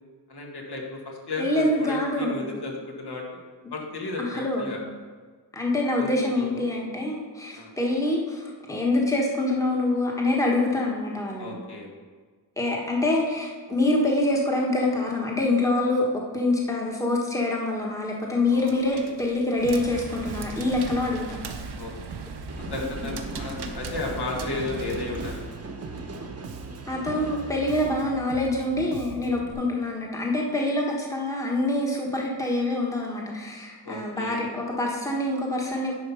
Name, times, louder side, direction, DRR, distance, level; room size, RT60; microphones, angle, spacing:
voice 1, 0.3-3.2 3.7-4.8 6.0-6.1 6.4-6.7 7.6-7.7 11.4-11.9 18.5-19.1 21.8-21.9 22.7-25.4 33.8-34.4, left 2 dB, 65° left, -1 dB, 1.9 m, -34 dB
voice 2, 1.4-2.4 4.2-4.7 5.5-11.6 12.6-21.4 23.0-23.2 26.9-35.9, left 2 dB, 5° left, -2 dB, 1.3 m, -25 dB
sound 1, 18.5-25.4, right 4 dB, 65° right, 1.0 m, -39 dB
Bass guitar, 19.6-29.5, right 5 dB, 90° right, 0.9 m, -41 dB
sound 2, 22.5-27.9, right 1 dB, 35° right, 1.1 m, -39 dB
10.5 x 4.6 x 5.6 m, 1.5 s
wide cardioid pair, 120°, 43 cm